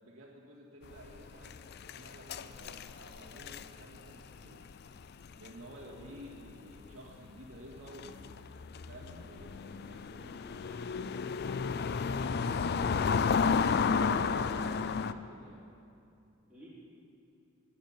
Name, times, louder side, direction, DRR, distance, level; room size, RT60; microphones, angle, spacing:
voice 1, 0.0-1.6 1.9-4.7 5.3-8.2 8.9-11.4 13.3-15.7, right 1 dB, 70° right, -9 dB, 2.1 m, -52 dB
sound 1, 0.9-6.5 6.8-6.9 7.6-15.1, left 5 dB, 50° left, 0.4 m, -32 dB
voice 2, 5.9-6.4 16.5-16.7, right 1 dB, 5° right, -12 dB, 4.2 m, -55 dB
11.5 x 9.3 x 8.8 m, 2.6 s
head